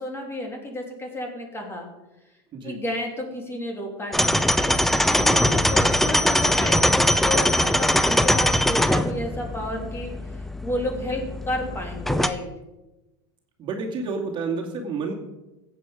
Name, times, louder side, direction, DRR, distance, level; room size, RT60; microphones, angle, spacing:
voice 1, 0.0-1.9 2.6-4.4 5.1-10.1 10.6-12.5, left 1 dB, 15° left, 2 dB, 3.0 m, -31 dB
sound 1, 4.1-12.3, left 1 dB, ahead, 0.6 m, -21 dB
voice 2, 13.6-15.1, right 4 dB, 35° right, 0 dB, 2.3 m, -29 dB
14.5 x 8.5 x 5.0 m, 1.0 s
supercardioid pair, 115°, 14 cm